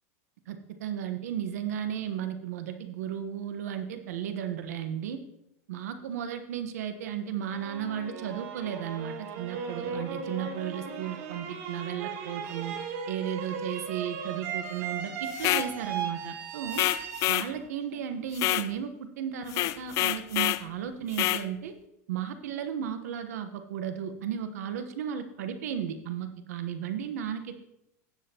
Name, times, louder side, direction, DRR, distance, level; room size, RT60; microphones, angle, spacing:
voice 1, 0.5-5.2 5.7-12.7 13.1-16.8 17.3-21.7 22.1-27.6, right 9 dB, 80° right, 8 dB, 1.2 m, -34 dB
sound 1, 7.5-18.5, right 6 dB, 65° right, 1.6 m, -37 dB
sound 2, 15.3-15.7 16.7-17.5 18.3-18.7 19.5-20.6 21.1-21.4, left 16 dB, 40° left, 0.4 m, -27 dB
17.0 x 7.5 x 3.0 m, 0.81 s
supercardioid pair, 135°, 8 cm